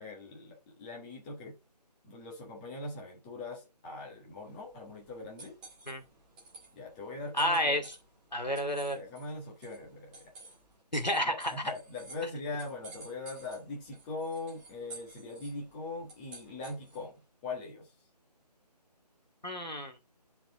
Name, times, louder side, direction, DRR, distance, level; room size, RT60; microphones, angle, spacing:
voice 1, 0.0-1.5 2.0-5.6 6.7-7.8 8.9-10.3 11.2-17.1 17.4-17.9, left 3 dB, 15° left, 1.6 m, -41 dB
sound 1, 4.3-17.2, right 3 dB, 5° right, 0.8 m, -54 dB
voice 2, 7.3-7.9 8.3-9.0 10.9-11.5 19.4-20.0, equal, 90° left, 2.4 m, -30 dB
10.0 x 4.6 x 3.6 m
figure-of-eight pair, 155°, 21 cm